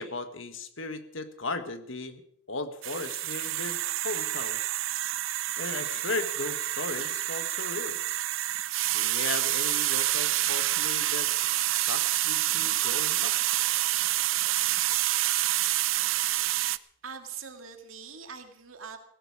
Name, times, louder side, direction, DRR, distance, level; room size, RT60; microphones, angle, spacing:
voice 1, 0.0-2.2 2.5-4.6 5.6-8.0 8.9-13.3, left 3 dB, 70° left, 9 dB, 1.6 m, -36 dB
sound 1, 2.8-16.8, right 15 dB, 75° right, 0.6 m, -28 dB
voice 2, 17.0-19.0, right 6 dB, 90° right, 6 dB, 2.2 m, -43 dB
18.0 x 15.5 x 4.9 m, 0.67 s
head